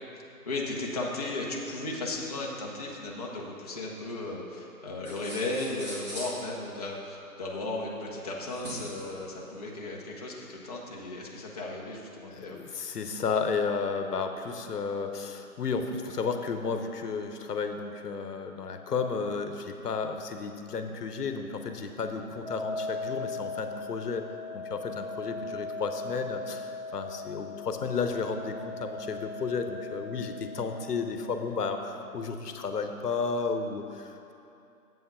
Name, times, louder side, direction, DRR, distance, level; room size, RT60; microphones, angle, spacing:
voice 1, 0.5-12.6, left 2 dB, 25° left, -3 dB, 0.7 m, -35 dB
sound 1, 5.0-6.4 8.5-9.1, equal, 15° right, 2.0 m, -41 dB
voice 2, 12.3-24.2 24.5-34.3, left 5 dB, 90° left, 6 dB, 0.9 m, -33 dB
sound 2, 22.4-31.1, left 3 dB, 45° right, 1.2 m, -39 dB
7.7 x 5.7 x 5.6 m, 2.7 s
hypercardioid pair, 160°, 46 cm